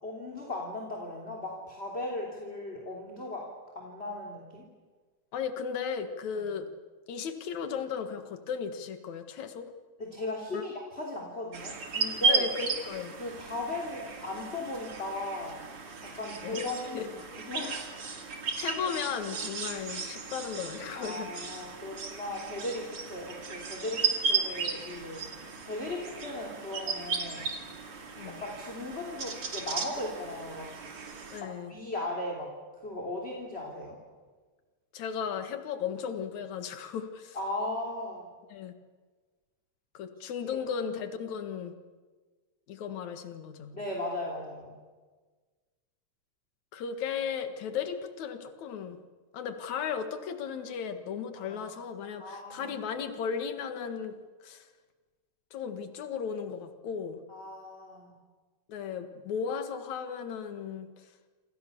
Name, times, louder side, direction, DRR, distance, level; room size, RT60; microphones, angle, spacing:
voice 1, 0.0-3.5 3.7-4.7 6.3-6.5 10.0-12.5 13.2-15.6 16.0-17.2 17.5-18.2 20.9-25.2 25.6-27.5 28.2-30.7 31.4-32.5 32.8-34.0 37.3-38.3 40.4-40.6 43.7-44.7 51.4-51.8 52.2-52.9 57.3-58.1, left 2 dB, 20° left, 0 dB, 3.3 m, -37 dB
voice 2, 5.3-6.7 7.1-9.7 10.5-10.6 12.3-13.1 16.4-17.1 18.6-21.6 28.2-28.4 31.3-31.8 34.9-37.4 38.5-38.7 39.9-41.7 42.7-43.8 46.7-49.0 49.3-54.1 54.4-54.7 55.5-57.2 58.7-61.1, left 7 dB, 70° left, 8 dB, 3.0 m, -35 dB
sound 1, 11.5-31.4, right 5 dB, 45° right, 3.4 m, -35 dB
27.5 x 27.0 x 7.0 m, 1.4 s
omnidirectional pair, 3.5 m